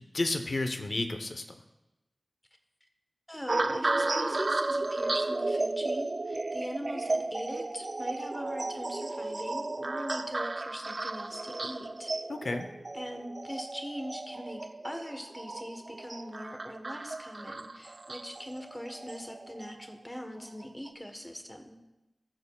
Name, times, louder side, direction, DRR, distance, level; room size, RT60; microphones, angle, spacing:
voice 1, 0.1-1.4 12.3-12.7, left 2 dB, 65° left, 6 dB, 0.8 m, -31 dB
voice 2, 3.3-12.1 12.9-21.8, equal, 10° left, 4 dB, 1.1 m, -41 dB
sound 1, 3.5-19.9 20.6-20.9, right 2 dB, 50° right, 0.4 m, -34 dB
19.5 x 6.6 x 2.3 m, 1.0 s
wide cardioid pair, 80°, 0 cm